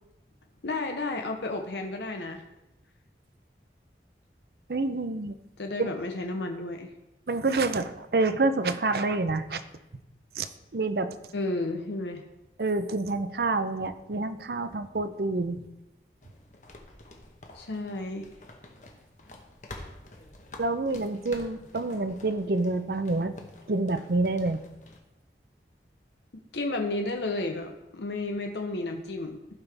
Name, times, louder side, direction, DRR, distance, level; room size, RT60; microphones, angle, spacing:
voice 1, 0.6-2.4 5.6-6.9 11.3-12.2 17.5-18.3 26.5-29.4, left 2 dB, 80° left, 4 dB, 0.8 m, -32 dB
voice 2, 4.7-5.3 5.8-5.9 7.3-9.6 10.4-11.1 12.6-15.6 20.6-23.3 23.7-24.6, right 3 dB, 60° right, 11 dB, 0.6 m, -27 dB
sound 1, 16.2-25.0, left 2 dB, 45° left, 1.0 m, -49 dB
14.5 x 5.7 x 3.4 m, 0.95 s
head